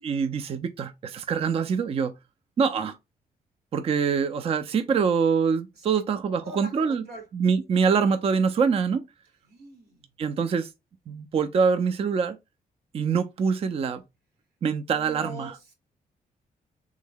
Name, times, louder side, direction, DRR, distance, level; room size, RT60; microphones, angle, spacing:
voice 1, 0.0-2.1 2.6-3.0 3.7-7.0 7.3-9.1 10.2-10.7 11.1-12.4 12.9-14.0 14.6-15.5, right 6 dB, 40° right, 0.3 m, -24 dB
voice 2, 6.4-7.3 9.4-10.1 14.9-15.7, right 1 dB, 85° right, 1.3 m, -43 dB
3.5 x 2.1 x 3.5 m
cardioid pair, 95°, 16 cm